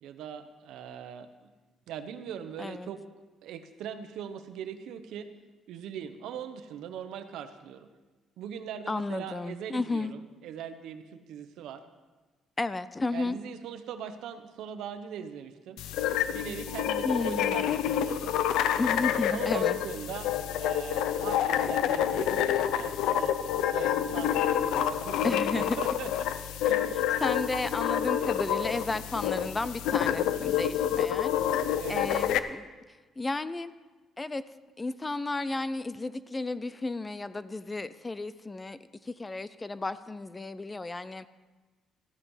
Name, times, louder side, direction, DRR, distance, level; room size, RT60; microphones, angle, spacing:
voice 1, 0.0-1.5 1.9-3.0 3.4-5.3 5.7-7.9 8.4-11.8 13.1-15.8 16.3-18.4 19.3-26.3 26.6-27.0 31.8-32.1, right 8 dB, 75° right, 9 dB, 1.0 m, -41 dB
voice 2, 2.6-2.9 8.9-10.1 12.6-13.4 17.0-17.6 18.8-19.8 25.2-25.8 27.2-31.6 31.9-32.7 33.2-33.7 34.2-34.4 34.8-41.3, left 3 dB, 15° left, 15 dB, 0.3 m, -33 dB
sound 1, 15.8-32.4, left 10 dB, 90° left, 0.6 m, -28 dB
14.0 x 9.9 x 5.5 m, 1.2 s
cardioid pair, 175°, 0 cm